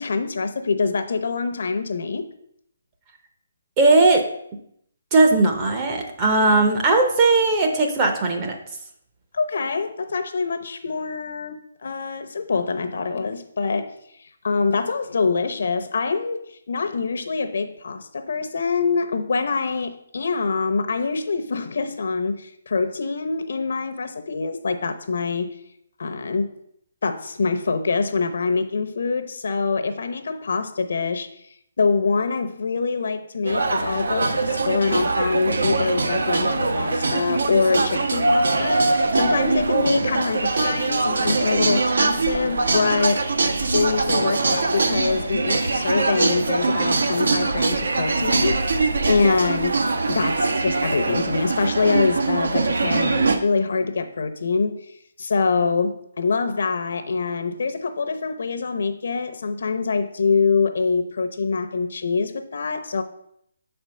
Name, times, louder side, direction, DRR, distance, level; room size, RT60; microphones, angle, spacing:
voice 1, 0.0-2.3 9.3-13.9 14.4-25.6 26.0-26.5 27.0-31.3 31.8-43.3 43.7-48.6 49.1-54.8 55.2-63.0, left 4 dB, 55° left, 0.7 m, -24 dB
voice 2, 3.8-4.2 5.1-8.6, right 3 dB, 15° right, 0.6 m, -18 dB
sound 1, 33.5-53.4, right 3 dB, 75° right, 0.9 m, -22 dB
6.1 x 4.4 x 6.2 m
hypercardioid pair, 180°, 0 cm